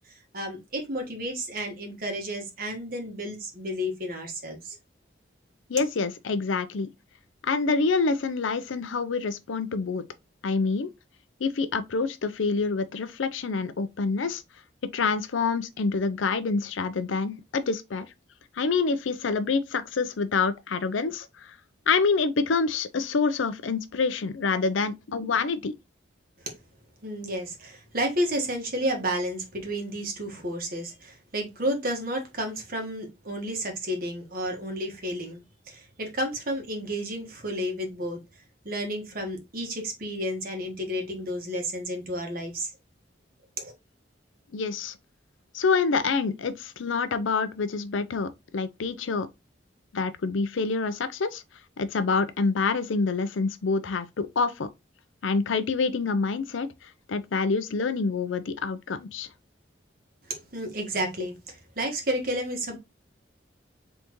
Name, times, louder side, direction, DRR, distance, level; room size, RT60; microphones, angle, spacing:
voice 1, 0.3-4.8 26.4-26.6 27.0-38.2 38.6-42.7 43.6-43.7 60.3-62.8, equal, 50° right, 1.5 m, -31 dB
voice 2, 5.7-6.9 7.4-10.0 10.4-10.9 11.4-14.4 14.9-18.1 18.5-21.6 21.9-25.7 44.5-45.0 45.5-49.3 49.9-51.4 51.8-54.7 55.2-59.3, left 4 dB, 90° left, 0.5 m, -27 dB
3.9 x 3.5 x 3.0 m
head